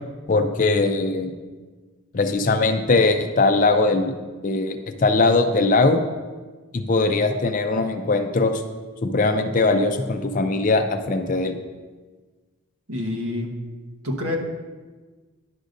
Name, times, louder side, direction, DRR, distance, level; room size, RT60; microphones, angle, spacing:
voice 1, 0.3-1.3 2.1-4.2 4.4-6.0 6.7-8.6 9.0-11.6, left 3 dB, 35° left, 7 dB, 0.4 m, -20 dB
voice 2, 12.9-13.5 14.0-14.4, left 2 dB, 80° right, 0 dB, 1.1 m, -27 dB
11.0 x 6.4 x 2.6 m, 1.3 s
head